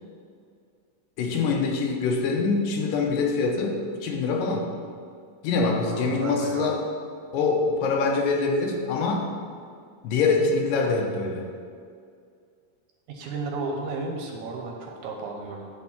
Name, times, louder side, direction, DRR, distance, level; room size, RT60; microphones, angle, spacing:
voice 1, 1.2-4.7 5.4-6.9 7.3-9.3 10.0-11.5, left 4 dB, 80° left, 2 dB, 2.5 m, -24 dB
voice 2, 5.9-6.7 13.1-15.7, right 3 dB, 70° right, 1 dB, 2.1 m, -33 dB
9.7 x 4.5 x 7.2 m, 2.2 s
omnidirectional pair, 4.0 m